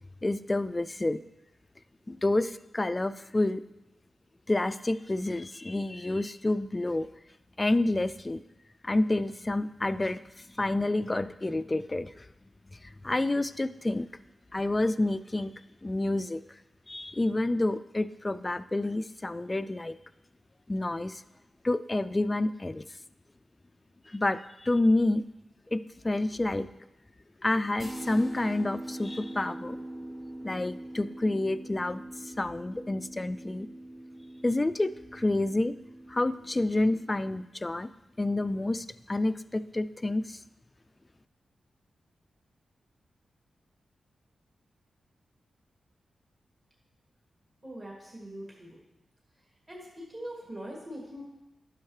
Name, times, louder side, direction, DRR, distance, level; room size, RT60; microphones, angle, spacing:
voice 1, 0.2-1.2 2.1-3.6 4.5-7.1 7.6-8.4 8.8-10.2 10.6-12.3 12.8-14.1 14.5-15.5 15.8-16.4 16.9-20.0 20.7-21.2 21.6-22.8 24.1-25.2 25.7-26.7 27.4-29.8 30.4-33.7 34.4-35.7 36.1-37.9 38.2-40.4, left 2 dB, 30° left, 13 dB, 0.3 m, -29 dB
sound 1, 27.8-37.4, right 1 dB, 5° right, 0.8 m, -43 dB
voice 2, 47.6-48.8 49.7-51.3, equal, 30° right, -3 dB, 2.5 m, -42 dB
10.5 x 6.5 x 3.2 m, 0.94 s
supercardioid pair, 45°, 0 cm